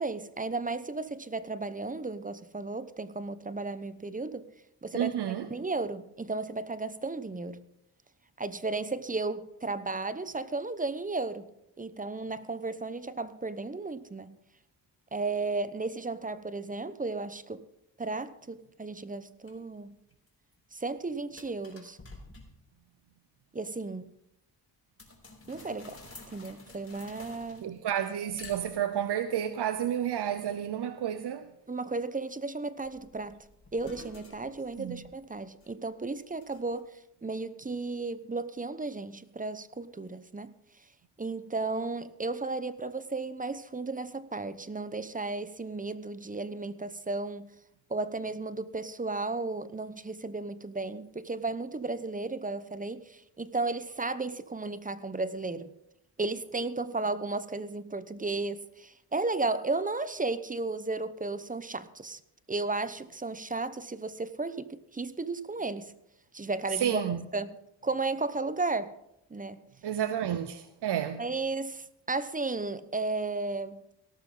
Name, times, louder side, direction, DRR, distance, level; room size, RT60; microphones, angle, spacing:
voice 1, 0.0-4.5 4.8-7.6 8.4-11.5 11.8-14.4 15.1-17.6 18.0-20.0 20.7-22.0 23.5-24.1 25.5-26.0 26.3-27.7 31.7-33.4 33.7-40.5 41.2-47.5 47.9-55.7 56.2-62.2 62.5-65.9 66.3-67.0 67.3-69.0 69.3-69.6 71.2-73.9, right 3 dB, 20° right, 0.9 m, -34 dB
voice 2, 4.9-5.5 27.6-31.5 34.8-35.0 66.7-67.2 69.8-71.2, right 10 dB, 70° right, 0.8 m, -31 dB
sound 1, 19.5-19.6 20.1-20.5 20.9-21.0 21.4-22.7 25.0-28.0 28.4-29.2 32.8-35.9 36.4-36.8, left 3 dB, 30° left, 4.7 m, -50 dB
18.0 x 13.0 x 3.9 m
cardioid pair, 70°, 42 cm